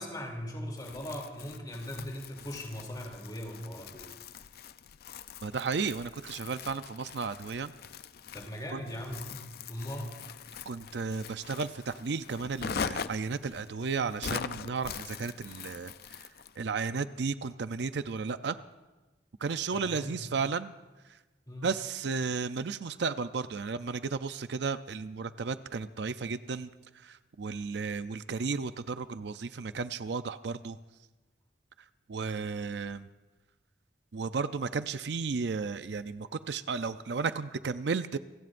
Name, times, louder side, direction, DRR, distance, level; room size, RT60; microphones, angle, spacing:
voice 1, 0.0-4.1 8.3-10.2 19.7-20.4 21.5-21.7, equal, 20° left, 1 dB, 3.0 m, -40 dB
Crumpling crinkling, 0.8-16.6, left 6 dB, 55° left, 0.4 m, -42 dB
voice 2, 5.4-7.7 8.7-8.8 10.7-15.9 16.6-18.6 19.4-20.7 21.6-26.7 27.0-30.8 32.1-33.1 34.1-38.2, right 4 dB, 65° right, 12 dB, 0.5 m, -33 dB
28.0 x 17.0 x 2.6 m, 1.2 s
head